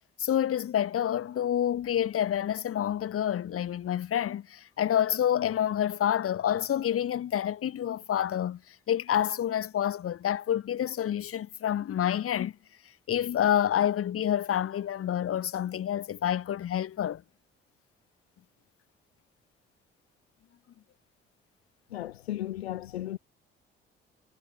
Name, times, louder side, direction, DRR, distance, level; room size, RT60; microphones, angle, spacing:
voice 1, 0.2-12.5 13.1-17.2, left 10 dB, 45° left, 2.1 m, -28 dB
voice 2, 21.9-23.2, left 13 dB, 80° left, 0.5 m, -35 dB
figure-of-eight pair, 45°, 31 cm